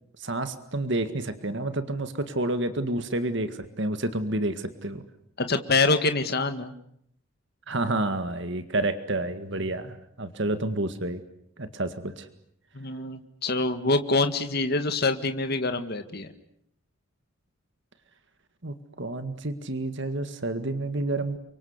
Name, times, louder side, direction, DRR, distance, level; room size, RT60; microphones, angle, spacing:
voice 1, 0.2-5.0 7.7-11.2 11.6-12.3 18.6-21.4, right 2 dB, 55° right, 10 dB, 1.9 m, -29 dB
voice 2, 5.4-6.7 12.7-16.3, left 3 dB, 45° left, 8 dB, 1.8 m, -25 dB
29.5 x 24.5 x 8.2 m, 0.70 s
head